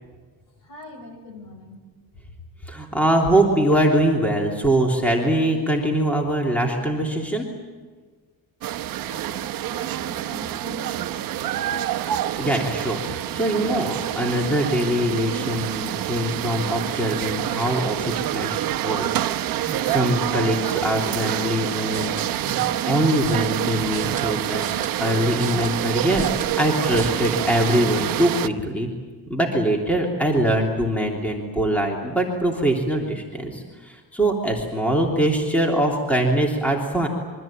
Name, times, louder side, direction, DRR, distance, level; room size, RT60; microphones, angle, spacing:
voice 1, 0.6-1.8 9.1-11.8, left 2 dB, 60° left, 6 dB, 6.2 m, -42 dB
voice 2, 2.7-7.5 12.4-19.1 19.5-26.3 26.6-28.9 29.3-37.1, right 1 dB, 5° left, 0 dB, 3.1 m, -23 dB
sound 1, 8.6-28.5, right 13 dB, 60° right, 1.0 m, -27 dB
sound 2, 21.8-27.1, right 4 dB, 20° right, 2.2 m, -39 dB
27.0 x 23.5 x 8.9 m, 1.5 s
cardioid pair, 160°, 38 cm